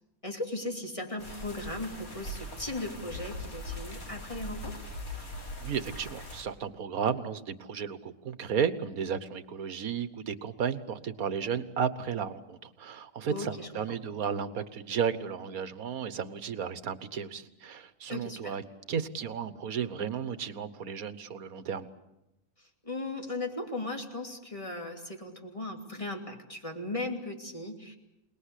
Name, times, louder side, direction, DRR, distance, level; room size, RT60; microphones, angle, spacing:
voice 1, 0.2-4.8 13.3-14.0 18.1-18.6 22.8-28.0, left 2 dB, 20° left, 3 dB, 3.0 m, -37 dB
sound 1, 1.2-6.4, left 1 dB, 85° left, 3.7 m, -41 dB
voice 2, 5.6-18.6 18.9-21.9, right 7 dB, 85° right, 13 dB, 1.6 m, -33 dB
28.0 x 20.0 x 8.3 m, 0.91 s
omnidirectional pair, 1.5 m